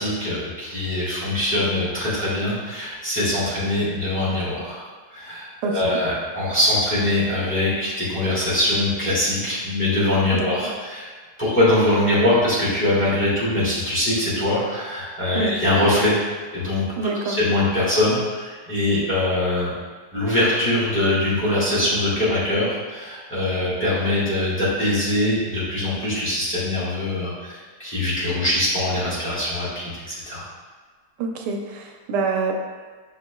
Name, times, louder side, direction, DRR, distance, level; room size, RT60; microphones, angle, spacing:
voice 1, 0.0-4.8 5.1-11.1 11.4-16.2 16.5-16.8 17.2-19.7 20.1-30.4, left 1 dB, 10° left, -10 dB, 1.3 m, -22 dB
voice 2, 5.6-6.0 10.3-10.5 15.3-15.5 17.0-17.4 31.2-32.5, right 4 dB, 90° right, 2 dB, 1.2 m, -26 dB
6.2 x 3.6 x 2.2 m, 1.4 s
omnidirectional pair, 1.7 m